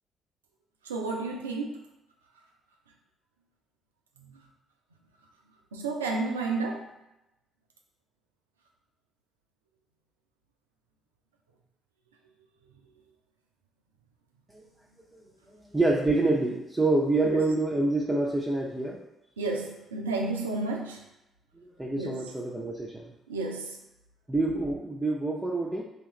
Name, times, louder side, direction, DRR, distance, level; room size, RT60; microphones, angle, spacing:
voice 1, 0.8-1.9 4.2-4.4 5.7-6.9 17.2-17.5 19.4-21.1 22.0-22.3 23.3-23.8, right 3 dB, 85° right, 1 dB, 0.4 m, -32 dB
voice 2, 15.7-19.0 21.6-23.1 24.3-25.8, right 2 dB, 10° right, -4 dB, 0.6 m, -27 dB
2.8 x 2.4 x 4.0 m, 0.91 s
figure-of-eight pair, 45°, 0 cm